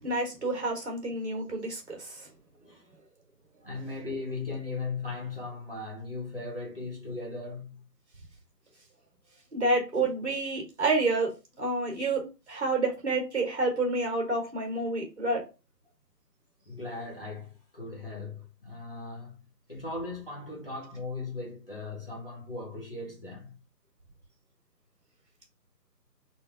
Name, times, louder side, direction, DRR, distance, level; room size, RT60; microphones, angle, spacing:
voice 1, 0.0-2.2 9.5-11.3 11.6-15.4, right 2 dB, 40° right, 1.5 m, -29 dB
voice 2, 3.6-7.8 16.7-19.4 19.7-23.6, left 3 dB, 35° left, 0.9 m, -38 dB
3.8 x 2.2 x 4.5 m
figure-of-eight pair, 170°, 50 cm